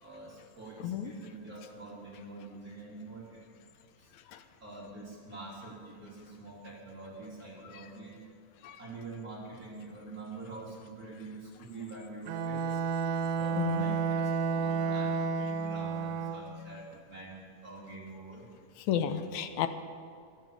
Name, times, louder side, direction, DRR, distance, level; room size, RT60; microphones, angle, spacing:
voice 1, 0.0-3.3 4.6-8.1 8.8-12.8 13.3-18.4, right 2 dB, 30° right, -5 dB, 3.2 m, -45 dB
voice 2, 0.8-1.1 4.3-4.4 8.6-8.8 13.6-14.0 18.9-19.7, left 9 dB, 75° left, 9 dB, 1.9 m, -32 dB
Bowed string instrument, 12.3-16.6, right 5 dB, 85° right, 2.3 m, -31 dB
12.5 x 12.5 x 7.3 m, 2.3 s
omnidirectional pair, 3.7 m